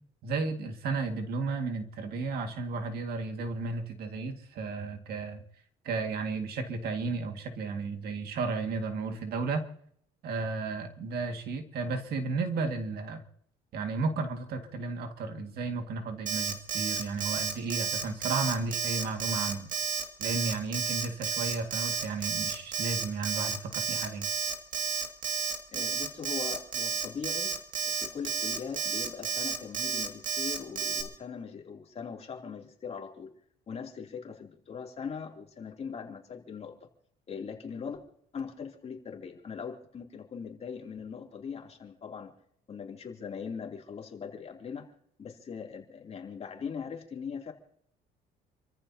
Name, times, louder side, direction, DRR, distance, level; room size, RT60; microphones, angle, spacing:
voice 1, 0.2-5.4 5.8-9.6 10.2-13.2 13.7-19.7 20.2-24.3, right 3 dB, 65° right, 6 dB, 2.1 m, -33 dB
Alarm, 16.3-31.0, right 6 dB, 50° right, 2.3 m, -31 dB
voice 2, 25.7-27.5 27.8-33.3 33.7-36.7 37.3-38.0 38.3-42.3 42.7-44.9 45.2-47.5, left 6 dB, 40° left, 1 dB, 3.1 m, -40 dB
29.0 x 14.5 x 2.9 m, 0.67 s
cardioid pair, 110°, 17 cm